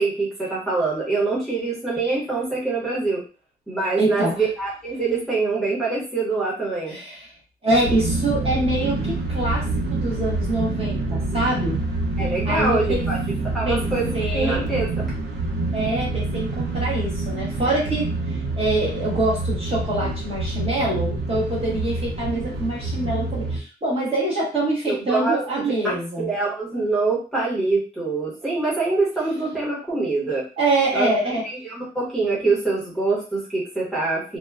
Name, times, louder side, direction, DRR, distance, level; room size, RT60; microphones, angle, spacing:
voice 1, 0.0-3.2 3.7-7.0 12.2-13.2 13.5-14.9 24.9-30.4 30.9-34.4, right 3 dB, ahead, -8 dB, 0.9 m, -25 dB
voice 2, 4.0-4.5 6.9-7.3 7.6-11.8 12.4-13.0 13.6-13.8 14.1-14.7 15.7-26.3 30.6-31.4, right 1 dB, 35° right, -5 dB, 1.1 m, -25 dB
sound 1, 7.7-23.6, right 2 dB, 75° right, 0.6 m, -27 dB
2.9 x 2.1 x 2.3 m, 0.35 s
wide cardioid pair, 165°, 18 cm